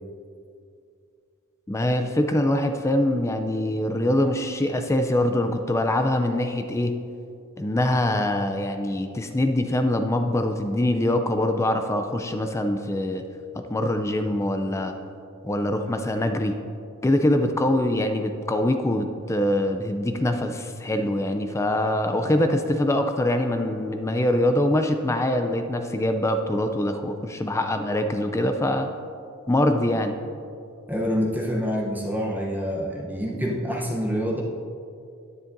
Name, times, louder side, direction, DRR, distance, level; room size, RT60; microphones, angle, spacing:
voice 1, 1.7-7.0 7.6-13.2 13.7-14.9 15.4-16.5 17.0-28.9 29.5-30.1, left 1 dB, 15° left, 7 dB, 0.3 m, -24 dB
voice 2, 30.9-34.4, equal, 10° right, -2 dB, 0.8 m, -26 dB
10.5 x 9.7 x 2.6 m, 2.4 s
head